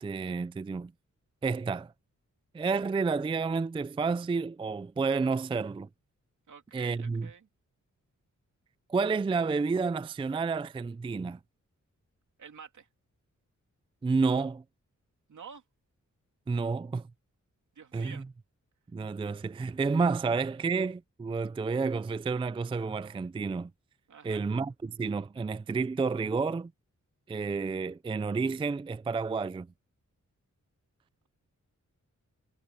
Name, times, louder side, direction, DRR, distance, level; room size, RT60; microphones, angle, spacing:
voice 1, 0.0-0.9 1.4-1.9 2.5-5.9 6.7-7.3 8.9-11.4 14.0-14.6 16.5-17.0 17.9-18.2 18.9-23.7 24.2-26.7 27.3-29.7, right 4 dB, 20° right, 0.3 m, -30 dB
voice 2, 6.5-7.5 12.4-12.9 15.3-15.6 17.7-18.2 24.1-24.5, right 6 dB, 75° right, 3.0 m, -49 dB
wide cardioid pair, 155°, 30 cm